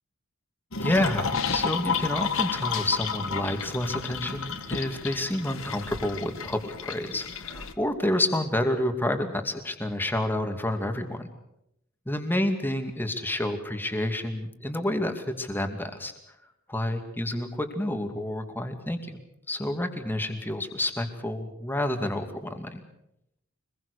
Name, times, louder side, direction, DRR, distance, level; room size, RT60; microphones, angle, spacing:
sound 1, 0.7-7.7, left 6 dB, 65° left, 1.7 m, -31 dB
voice 1, 0.8-11.3 12.1-16.1 16.7-19.2 19.5-22.8, left 1 dB, 10° left, 6 dB, 2.4 m, -29 dB
25.0 x 21.0 x 6.7 m, 0.80 s
head